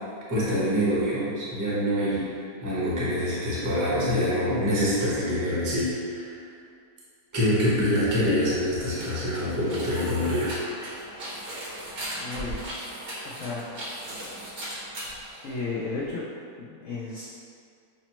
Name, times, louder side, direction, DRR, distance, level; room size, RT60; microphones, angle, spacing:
voice 1, 0.3-6.4 7.3-10.6, equal, 20° right, -9 dB, 0.5 m, -25 dB
sound 1, 8.2-16.1, right 1 dB, 50° right, 0.8 m, -38 dB
voice 2, 12.2-12.6 13.2-13.7 15.4-16.2 16.6-17.2, left 3 dB, 80° left, -6 dB, 0.7 m, -33 dB
5.8 x 2.0 x 2.9 m, 2.3 s
omnidirectional pair, 1.8 m